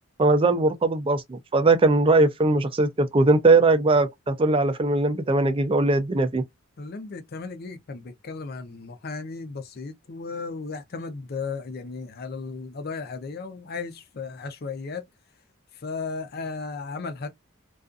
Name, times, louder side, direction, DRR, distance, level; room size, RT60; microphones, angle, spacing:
voice 1, 0.2-6.4, right 2 dB, 25° right, 0.4 m, -20 dB
voice 2, 6.8-15.0 15.7-17.4, left 4 dB, 50° left, 0.5 m, -35 dB
2.4 x 2.3 x 2.4 m
head